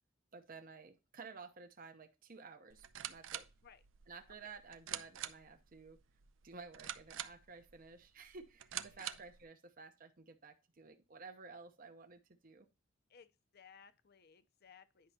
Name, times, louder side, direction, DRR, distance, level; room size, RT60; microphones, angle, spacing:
voice 1, 0.3-3.5 4.1-6.0 6.4-12.7, right 4 dB, 45° right, 0.8 m, -54 dB
sound 1, 2.7-9.4, right 11 dB, 70° right, 0.6 m, -47 dB
voice 2, 13.1-15.1, left 6 dB, 55° left, 0.7 m, -61 dB
10.5 x 5.5 x 2.8 m
head